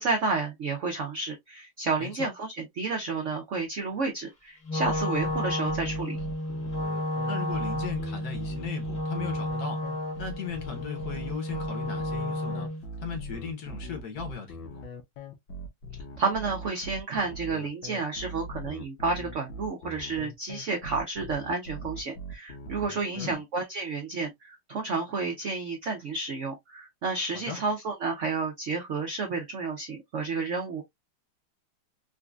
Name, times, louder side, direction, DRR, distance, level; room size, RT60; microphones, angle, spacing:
voice 1, 0.0-6.2 16.2-30.8, right 4 dB, 85° right, 0.6 m, -31 dB
Wind instrument woodwind instrument, 4.6-12.8, equal, 30° left, 0.9 m, -32 dB
sound 1, 4.8-23.3, right 1 dB, 75° left, 1.5 m, -40 dB
voice 2, 7.3-9.8 10.2-12.7 13.0-14.8 23.1-23.4 27.3-27.6, left 6 dB, 60° left, 1.2 m, -37 dB
3.9 x 2.5 x 2.3 m
omnidirectional pair, 2.2 m